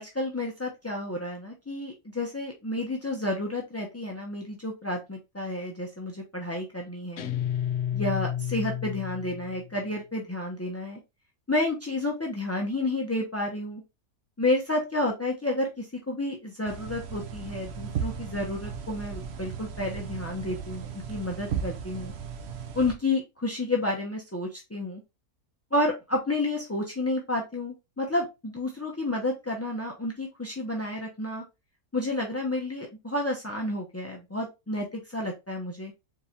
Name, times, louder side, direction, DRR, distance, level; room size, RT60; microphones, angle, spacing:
voice 1, 0.0-7.3 7.9-11.0 11.5-13.8 14.4-22.1 22.7-25.0 25.7-31.4 31.9-35.9, left 2 dB, 20° left, 0 dB, 0.4 m, -30 dB
Guitar, 7.2-9.8, left 10 dB, 65° left, 0.8 m, -31 dB
sound 1, 16.6-22.9, right 7 dB, 55° right, 0.8 m, -36 dB
4.1 x 3.9 x 2.4 m, 0.24 s
omnidirectional pair, 1.6 m